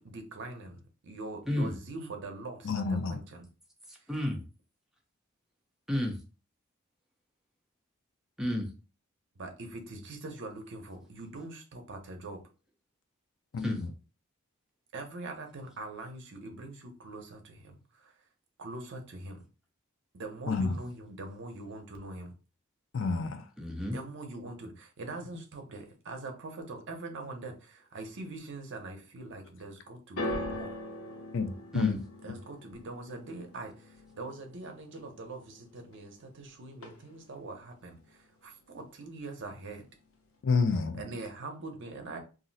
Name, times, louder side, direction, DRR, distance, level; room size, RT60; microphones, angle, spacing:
voice 1, 0.0-3.5 3.9-4.1 9.3-12.4 14.9-18.2 18.6-19.4 20.1-22.3 23.9-30.7 32.2-39.8 41.0-42.2, right 2 dB, 60° right, 0.7 m, -43 dB
voice 2, 2.6-3.2 13.5-13.9 20.5-20.8 22.9-23.5 31.3-32.0 40.4-41.0, left 4 dB, 60° left, 0.4 m, -29 dB
voice 3, 3.9-4.4 5.9-6.2 8.4-8.7 13.6-13.8 23.6-24.0 31.7-32.0, left 1 dB, ahead, 0.6 m, -31 dB
sound 1, 30.2-36.4 36.7-37.4 38.1-38.2, left 1 dB, 85° left, 0.8 m, -41 dB
2.5 x 2.0 x 3.9 m
head